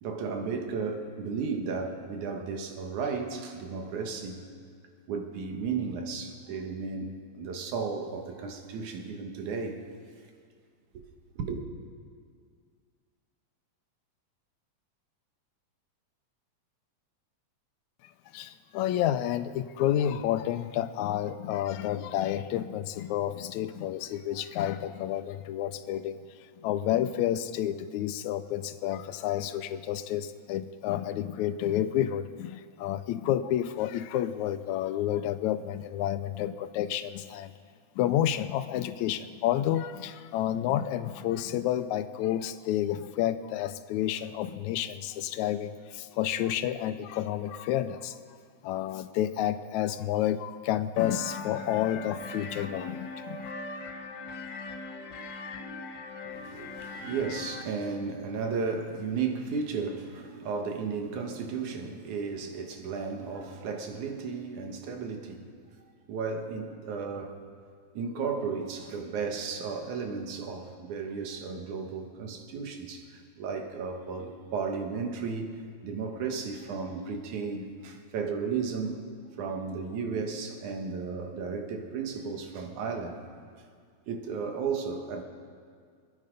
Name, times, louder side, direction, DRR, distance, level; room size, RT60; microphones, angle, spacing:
voice 1, 0.0-4.5 5.1-9.8 10.9-11.0 11.4-11.6 56.3-65.5 66.1-67.4 67.9-79.0 79.4-83.2 84.1-85.2, right 5 dB, 85° right, 4 dB, 2.8 m, -34 dB
voice 2, 18.3-26.2 26.6-37.5 38.0-48.2 48.6-53.5, left 11 dB, 80° left, 12 dB, 1.9 m, -30 dB
sound 1, 51.0-57.6, left 3 dB, 60° left, 1.2 m, -40 dB
26.5 x 9.6 x 5.1 m, 2.1 s
omnidirectional pair, 3.4 m